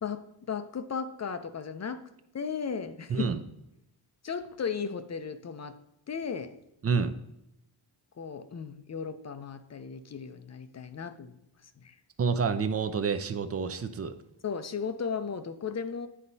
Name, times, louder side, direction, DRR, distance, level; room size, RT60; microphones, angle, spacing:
voice 1, 0.0-2.1 2.3-3.3 4.2-5.8 6.1-6.5 8.2-11.3 11.8-12.0 14.4-16.1, left 6 dB, 35° left, 10 dB, 0.5 m, -35 dB
voice 2, 6.8-7.1 12.2-14.2, right 5 dB, 30° right, 10 dB, 0.5 m, -28 dB
9.7 x 4.2 x 2.7 m, 0.84 s
cardioid pair, 80°, 48 cm